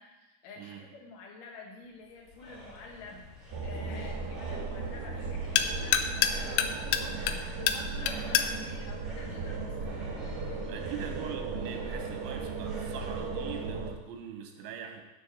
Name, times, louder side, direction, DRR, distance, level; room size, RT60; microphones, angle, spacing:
voice 1, 0.0-10.8, left 3 dB, 60° left, -1 dB, 1.9 m, -49 dB
sound 1, 1.8-13.7, right 1 dB, 35° right, 0.6 m, -50 dB
sound 2, 2.5-10.1, left 9 dB, 85° left, 2.5 m, -32 dB
sound 3, 3.5-13.9, right 4 dB, 70° right, 2.0 m, -36 dB
voice 2, 10.7-15.0, right 8 dB, 90° right, 3 dB, 3.6 m, -42 dB
11.0 x 4.3 x 7.0 m, 1.1 s
omnidirectional pair, 5.3 m